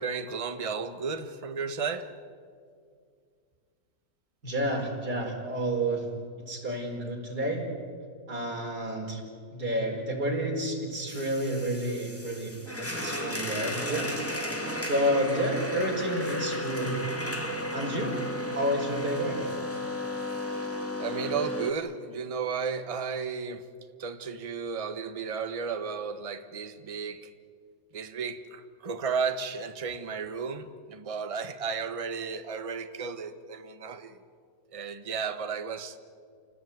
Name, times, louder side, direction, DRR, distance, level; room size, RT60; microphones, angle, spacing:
voice 1, 0.0-2.1 21.0-23.7 24.0-27.3 27.9-34.2 34.7-36.0, right 5 dB, 20° right, 9 dB, 1.0 m, -33 dB
voice 2, 4.4-6.1 6.5-7.6 8.3-9.2 9.5-14.1 14.9-16.9 17.7-18.2 18.5-19.5, equal, 55° right, 0 dB, 5.1 m, -30 dB
sound 1, 11.1-21.7, left 1 dB, 5° left, 2.2 m, -34 dB
28.5 x 19.0 x 9.5 m, 2.2 s
omnidirectional pair, 2.0 m